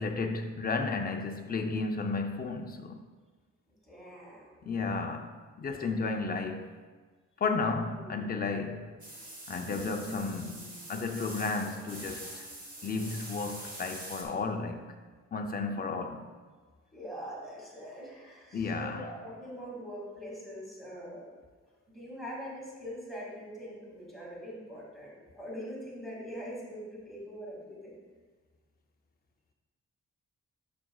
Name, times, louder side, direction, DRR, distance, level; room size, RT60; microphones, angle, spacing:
voice 1, 0.0-3.0 4.6-6.7 7.4-9.0 9.5-12.5 12.8-14.9 15.3-16.3 18.5-19.1, left 4 dB, 30° left, 4 dB, 0.5 m, -33 dB
voice 2, 3.8-4.7 7.9-8.2 9.7-10.2 16.9-21.3 21.9-28.0, equal, ahead, -5 dB, 2.2 m, -43 dB
sound 1, 9.0-14.2, right 1 dB, 30° right, 1.3 m, -45 dB
10.5 x 6.1 x 2.3 m, 1.4 s
wide cardioid pair, 180°, 29 cm